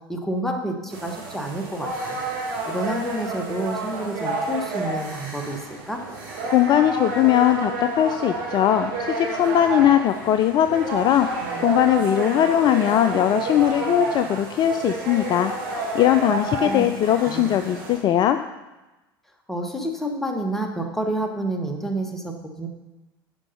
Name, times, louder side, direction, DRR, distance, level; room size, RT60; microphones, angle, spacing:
voice 1, 0.1-2.2 2.7-6.0 16.3-16.9 17.2-17.6 19.5-22.7, right 1 dB, ahead, 2 dB, 1.3 m, -29 dB
sound 1, 0.9-18.0, right 3 dB, 60° right, 2.5 m, -30 dB
voice 2, 6.5-11.3 11.6-18.4, left 11 dB, 35° left, 9 dB, 0.4 m, -20 dB
9.7 x 5.1 x 5.5 m, 1.1 s
figure-of-eight pair, 70°, 13 cm